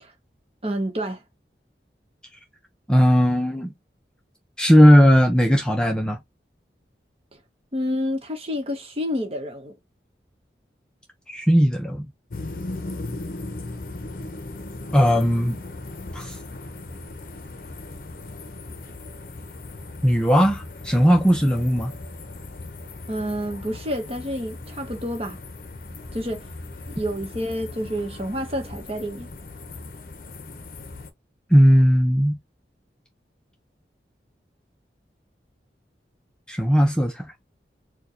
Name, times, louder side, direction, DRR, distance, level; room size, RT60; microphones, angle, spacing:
voice 1, 0.6-1.2 7.7-9.7 23.1-25.4 26.1-26.5 26.9-29.3, equal, 35° right, 1.1 m, -29 dB
voice 2, 2.9-3.7 4.6-6.2 11.3-12.1 14.9-15.6 16.1-16.4 20.0-21.9 31.5-32.4 36.5-37.3, equal, 5° left, 0.5 m, -17 dB
sound 1, 12.3-31.1, left 2 dB, 50° left, 0.7 m, -38 dB
4.5 x 2.3 x 2.7 m
head